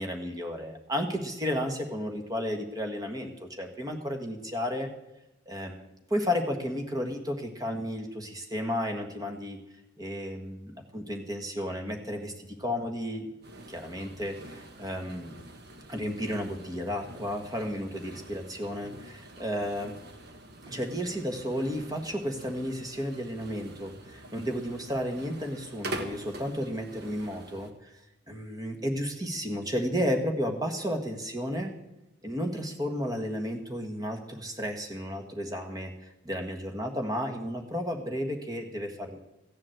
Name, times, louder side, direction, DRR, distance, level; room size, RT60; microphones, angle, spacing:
voice 1, 0.0-4.9 5.5-9.6 10.0-13.3 13.7-15.4 15.9-19.9 20.7-27.9 28.3-31.7 32.2-35.9 36.2-39.2, equal, 20° right, 4 dB, 1.5 m, -33 dB
sound 1, 13.4-27.7, right 1 dB, 55° right, 1.2 m, -45 dB
15.5 x 7.4 x 7.8 m, 0.94 s
head